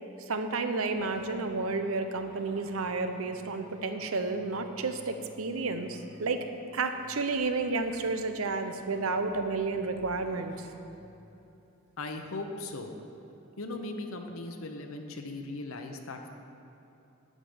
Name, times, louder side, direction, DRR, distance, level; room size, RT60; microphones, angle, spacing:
voice 1, 0.3-6.4 6.7-10.7, right 3 dB, 85° right, 7 dB, 0.8 m, -31 dB
sound 1, 0.9-11.2, right 1 dB, 35° right, 2.5 m, -53 dB
voice 2, 12.0-12.9 13.6-16.3, left 2 dB, 85° left, 4 dB, 0.9 m, -38 dB
12.0 x 5.1 x 7.9 m, 3.0 s
head